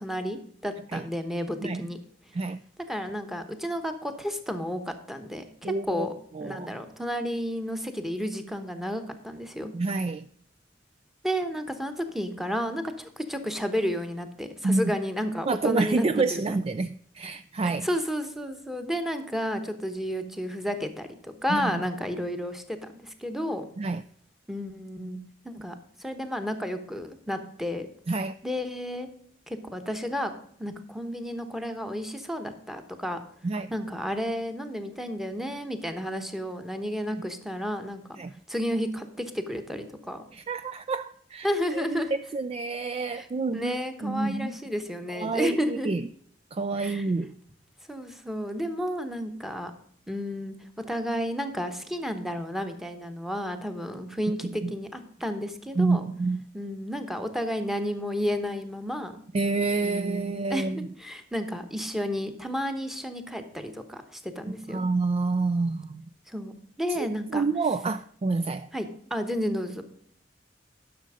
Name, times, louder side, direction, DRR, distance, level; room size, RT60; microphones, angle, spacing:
voice 1, 0.0-2.0 2.9-6.1 6.4-9.7 11.2-16.4 17.6-23.7 24.5-25.2 25.4-27.9 28.4-29.1 29.5-30.3 30.6-33.2 33.7-38.0 38.5-40.3 41.4-42.1 43.1-43.3 43.5-45.9 46.8-47.1 47.9-49.7 50.1-56.1 56.5-59.2 59.8-64.9 66.3-67.4 68.7-69.8, equal, ahead, 1.1 m, -32 dB
voice 2, 5.6-6.1 6.4-6.7 9.7-10.3 14.6-14.9 15.4-17.9 21.5-21.7 23.8-24.0 28.1-28.3 33.4-33.7 38.2-38.3 40.3-43.8 44.0-44.6 45.1-46.0 46.5-47.3 54.4-54.7 55.8-56.4 59.3-60.9 64.5-66.0 67.0-68.7, right 3 dB, 35° right, 0.3 m, -28 dB
11.5 x 6.4 x 4.9 m
head